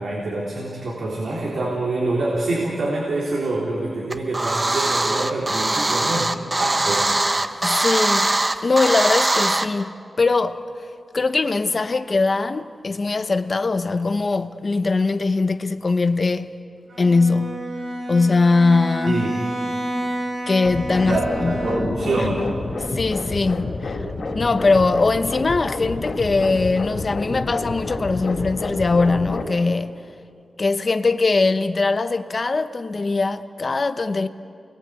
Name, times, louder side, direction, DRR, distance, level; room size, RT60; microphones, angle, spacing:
voice 1, 0.0-6.3 6.6-7.1 19.1-19.3 21.0-22.5, right 2 dB, 75° right, 3.8 m, -25 dB
sound 1, 4.1-9.7, right 2 dB, 25° right, 1.0 m, -21 dB
voice 2, 7.6-8.4 8.6-10.6 11.1-16.6 17.0-17.7 18.1-19.2 20.5-21.6 22.2-22.3 22.9-24.0 24.3-30.0 30.6-34.3, left 3 dB, 40° left, 1.0 m, -21 dB
Bowed string instrument, 16.9-22.2, right 1 dB, 50° right, 7.2 m, -30 dB
sound 2, 20.6-29.4, left 2 dB, 65° left, 3.5 m, -29 dB
29.0 x 21.5 x 8.3 m
wide cardioid pair, 125°, 0 cm